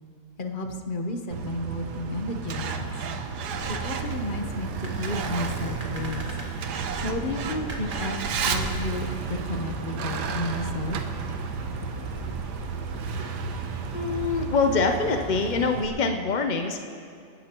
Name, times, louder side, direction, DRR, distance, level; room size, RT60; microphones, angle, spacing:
voice 1, 0.4-2.9 3.7-6.3 7.0-11.0, left 2 dB, 35° left, 4 dB, 0.9 m, -32 dB
Truck, 1.3-15.9, right 6 dB, 75° right, 1.4 m, -32 dB
sound 1, 3.5-14.4, right 1 dB, 30° right, 1.7 m, -40 dB
voice 2, 13.9-16.8, left 4 dB, 65° left, 5 dB, 0.4 m, -24 dB
27.0 x 11.5 x 3.0 m, 2.4 s
omnidirectional pair, 1.8 m